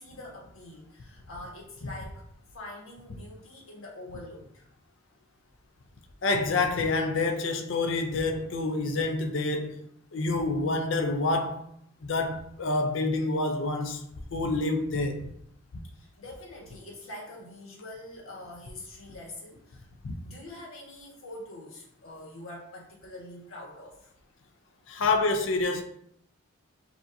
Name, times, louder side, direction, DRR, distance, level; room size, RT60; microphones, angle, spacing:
voice 1, 0.0-2.2 2.5-4.7 15.9-19.9 20.2-24.1 25.0-25.1, left 1 dB, 80° left, 1.4 m, -45 dB
voice 2, 6.2-11.7 12.0-15.3 20.0-20.1 24.9-25.8, left 3 dB, 60° left, 0.5 m, -28 dB
6.7 x 2.9 x 2.6 m
head